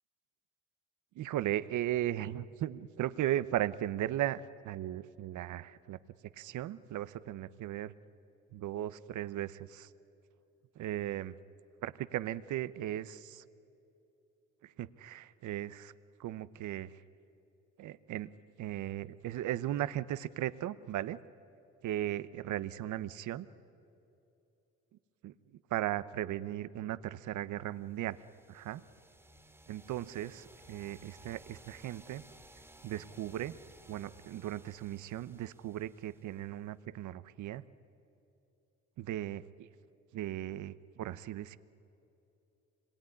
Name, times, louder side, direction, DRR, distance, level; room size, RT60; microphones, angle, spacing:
voice 1, 1.2-6.0 6.3-7.9 8.5-9.9 10.8-11.4 11.8-13.4 14.6-15.9 16.2-16.9 17.8-18.3 18.6-21.2 21.8-23.5 25.2-25.3 25.7-28.2 28.5-28.8 29.7-32.2 32.8-33.6 33.9-37.6 39.0-39.7 40.1-41.6, right 13 dB, 75° right, 16 dB, 0.8 m, -37 dB
sound 1, 27.9-36.6, right 1 dB, 5° right, 2.3 m, -58 dB
26.5 x 21.5 x 9.9 m, 2.8 s
cardioid pair, 90°, 30 cm